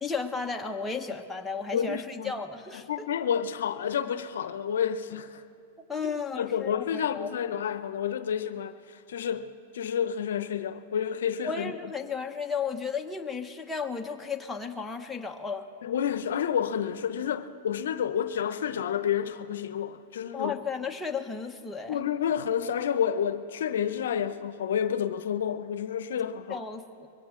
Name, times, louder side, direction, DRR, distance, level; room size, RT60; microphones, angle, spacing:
voice 1, 0.0-2.9 5.9-7.4 11.4-15.7 20.3-22.0 26.5-27.1, left 5 dB, 10° left, 1.0 m, -34 dB
voice 2, 1.7-2.3 2.9-5.4 6.0-9.5 9.7-11.8 15.8-20.6 21.9-26.6, left 8 dB, 75° left, 0.6 m, -30 dB
22.5 x 17.0 x 3.7 m
hypercardioid pair, 120°, 0 cm